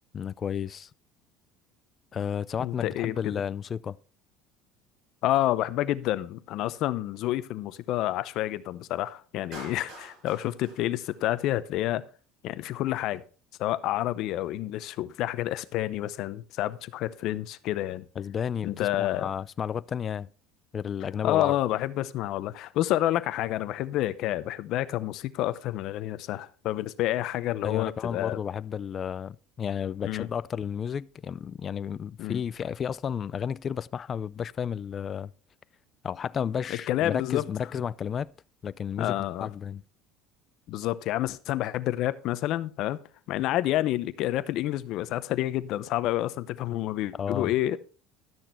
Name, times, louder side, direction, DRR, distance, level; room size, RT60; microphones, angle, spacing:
voice 1, 0.1-0.9 2.1-4.0 18.2-20.3 20.7-21.6 27.6-35.3 36.0-38.3 38.6-39.8 47.2-47.5, left 8 dB, 30° left, 0.4 m, -32 dB
voice 2, 2.6-3.3 5.2-12.0 12.4-13.2 13.6-18.1 18.6-19.3 21.2-28.4 30.0-30.3 32.2-32.4 36.7-37.4 39.0-39.5 40.7-43.0 43.3-47.8, left 14 dB, 60° left, 0.7 m, -29 dB
Clapping, 9.5-11.8, right 1 dB, 55° right, 6.3 m, -47 dB
12.0 x 6.5 x 4.4 m
cardioid pair, 130°, 0 cm